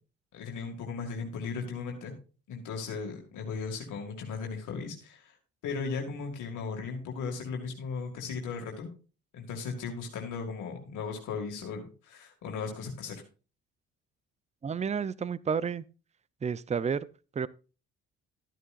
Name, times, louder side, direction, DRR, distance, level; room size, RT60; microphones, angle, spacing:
voice 1, 0.3-2.1 2.5-5.4 5.6-8.9 9.3-13.2, left 5 dB, 80° left, 2.2 m, -37 dB
voice 2, 14.6-15.8 16.4-17.1 17.3-17.5, right 6 dB, 25° right, 0.5 m, -30 dB
13.0 x 9.7 x 2.5 m
cardioid pair, 90°, 30 cm